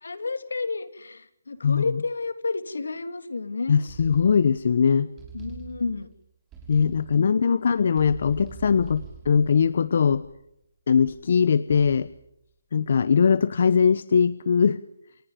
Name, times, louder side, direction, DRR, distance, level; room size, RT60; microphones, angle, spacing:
voice 1, 0.0-3.9 5.3-6.1 7.1-7.6, left 3 dB, 85° left, 10 dB, 3.2 m, -31 dB
voice 2, 3.7-5.1 6.7-10.2 10.9-12.1 12.7-14.8, left 6 dB, 50° left, 16 dB, 1.0 m, -21 dB
sound 1, 3.9-4.7 5.2-6.1 6.5-7.3 7.9-10.5 11.0-11.3 11.7-12.2, right 6 dB, 10° right, 6.1 m, -45 dB
29.0 x 27.0 x 5.3 m, 0.76 s
hypercardioid pair, 165°, 0 cm